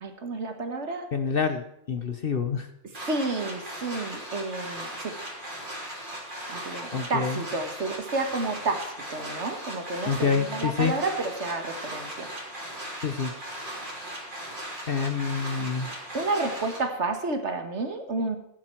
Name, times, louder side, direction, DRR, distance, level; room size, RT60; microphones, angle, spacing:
voice 1, 0.0-1.1 3.1-5.2 6.5-12.3 12.6-12.8 16.1-18.4, right 3 dB, 55° right, 7 dB, 1.7 m, -30 dB
voice 2, 1.1-2.7 6.9-7.4 10.1-10.9 13.0-13.3 14.9-15.9, left 5 dB, 45° left, 8 dB, 1.0 m, -27 dB
sound 1, 2.9-16.8, right 1 dB, 35° right, 3.7 m, -38 dB
16.0 x 10.5 x 4.5 m, 0.78 s
omnidirectional pair, 1.5 m